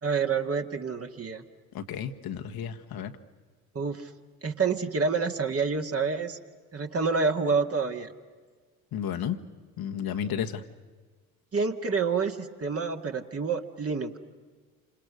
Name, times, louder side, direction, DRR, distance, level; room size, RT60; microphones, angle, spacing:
voice 1, 0.0-1.4 3.7-4.1 4.4-6.4 6.7-8.1 11.5-14.2, right 5 dB, 30° right, 5 dB, 2.0 m, -28 dB
voice 2, 1.7-3.1 8.9-9.4 9.8-10.6, left 8 dB, 50° left, 5 dB, 1.5 m, -32 dB
28.0 x 27.0 x 6.4 m, 1.5 s
hypercardioid pair, 55°, 46 cm